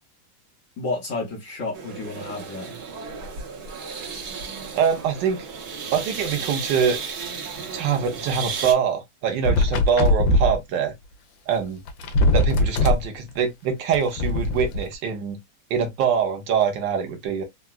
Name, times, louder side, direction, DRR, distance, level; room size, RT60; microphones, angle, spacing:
voice 1, 0.8-2.8, left 3 dB, 55° left, 1.0 m, -31 dB
sound 1, 1.7-8.7, right 5 dB, 60° right, 1.4 m, -34 dB
voice 2, 4.8-5.4 5.9-7.0 7.7-10.9 11.5-11.8 12.3-15.4 15.7-17.4, right 7 dB, 75° right, 1.4 m, -24 dB
sound 2, 9.4-10.6 11.6-11.7 11.9-13.0 13.9-14.8, left 2 dB, 85° left, 1.4 m, -20 dB
3.8 x 2.2 x 2.3 m
omnidirectional pair, 2.0 m